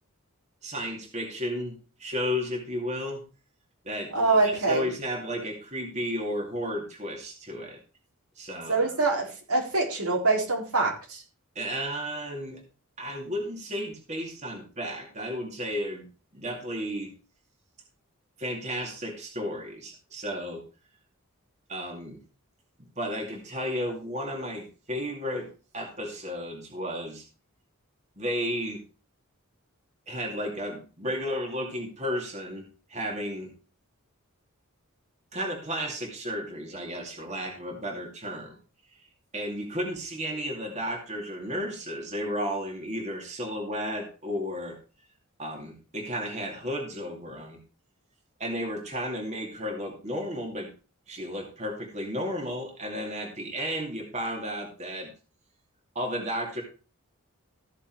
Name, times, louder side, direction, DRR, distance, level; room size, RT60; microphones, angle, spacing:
voice 1, 0.6-3.2 3.8-4.1 4.4-7.8 8.4-8.8 11.6-12.6 13.0-16.1 16.3-17.1 18.4-20.6 21.7-22.2 23.0-25.5 25.7-27.2 28.2-28.8 30.1-33.5 35.3-38.6 39.3-44.8 45.4-47.6 48.4-50.7 51.1-55.1 55.9-56.6, equal, 30° right, 1 dB, 2.4 m, -33 dB
voice 2, 4.1-4.8 8.7-11.2, right 3 dB, 85° right, -1 dB, 4.0 m, -24 dB
14.0 x 6.7 x 4.6 m, 0.35 s
head